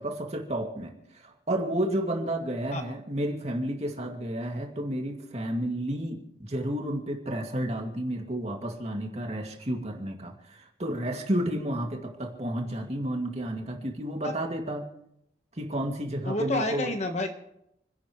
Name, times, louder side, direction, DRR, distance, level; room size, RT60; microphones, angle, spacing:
voice 1, 0.0-14.9 15.5-16.9, right 1 dB, 35° right, 2 dB, 2.3 m, -31 dB
voice 2, 16.2-17.3, left 2 dB, 40° left, 6 dB, 1.2 m, -29 dB
29.5 x 11.5 x 3.1 m, 0.80 s
head